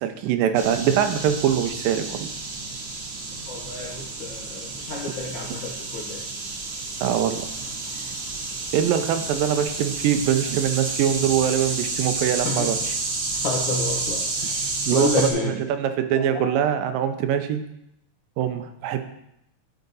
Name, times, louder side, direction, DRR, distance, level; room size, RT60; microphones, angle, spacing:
voice 1, 0.0-2.3 7.0-7.4 8.7-13.0 14.9-17.6 18.4-19.0, right 9 dB, 90° right, 8 dB, 2.4 m, -23 dB
sound 1, 0.5-15.3, right 3 dB, 55° right, 1.6 m, -30 dB
voice 2, 3.5-6.2 12.4-12.7 13.4-15.5 16.2-16.5, left 3 dB, 85° left, -3 dB, 1.0 m, -29 dB
12.5 x 4.7 x 4.0 m, 0.80 s
omnidirectional pair, 3.8 m